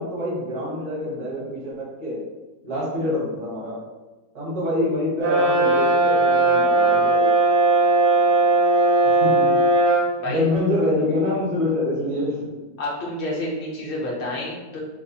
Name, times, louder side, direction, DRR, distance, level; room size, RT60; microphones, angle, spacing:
voice 1, 0.0-2.2 2.6-3.7 4.3-7.3 9.2-9.6 10.2-12.5, left 1 dB, 45° right, -5 dB, 1.4 m, -26 dB
Brass instrument, 5.2-10.1, right 2 dB, 75° right, 1.2 m, -18 dB
voice 2, 9.9-10.5 12.8-14.8, left 1 dB, 45° left, -4 dB, 0.9 m, -29 dB
3.1 x 2.1 x 4.1 m, 1.2 s
omnidirectional pair, 2.0 m